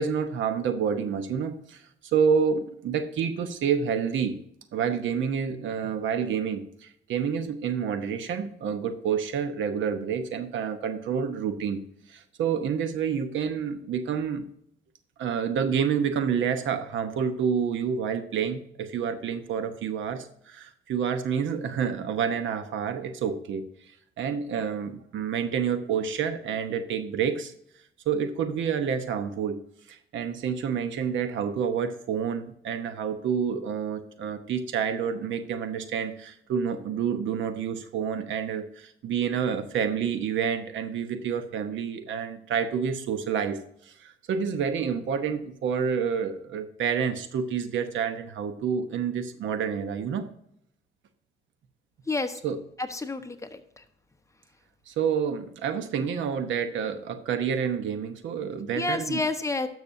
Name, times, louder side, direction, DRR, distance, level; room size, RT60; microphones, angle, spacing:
voice 1, 0.0-4.4 4.7-11.8 12.1-14.5 15.2-23.7 24.2-27.5 28.1-29.6 29.9-50.3 52.4-52.6 54.9-59.2, right 7 dB, 75° right, 9 dB, 1.0 m, -28 dB
voice 2, 52.1-52.4 52.8-53.8 58.7-59.7, left 3 dB, 15° left, 7 dB, 1.0 m, -29 dB
12.5 x 6.2 x 2.7 m, 0.70 s
cardioid pair, 90°, 20 cm